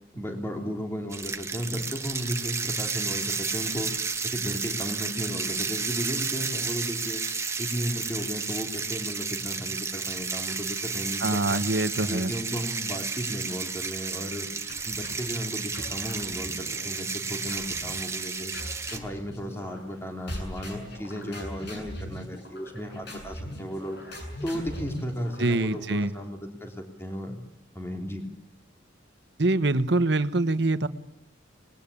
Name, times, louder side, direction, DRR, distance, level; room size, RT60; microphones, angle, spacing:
voice 1, 0.1-3.9 4.2-7.2 7.6-11.6 12.1-14.5 14.8-18.5 18.9-24.0 24.4-27.4 27.7-28.2, equal, 15° left, 3 dB, 3.3 m, -35 dB
sound 1, 1.1-19.0, right 5 dB, 15° right, 1.2 m, -32 dB
voice 2, 11.2-12.3 25.4-26.1 29.4-30.9, right 2 dB, 60° right, 12 dB, 1.2 m, -24 dB
sound 2, 14.7-15.3 15.7-16.9 17.5-18.0 18.5-20.0 20.3-26.0, equal, 60° left, 7.5 m, -41 dB
sound 3, 20.3-21.9, equal, 35° left, 1.7 m, -40 dB
26.0 x 20.5 x 8.6 m, 0.82 s
head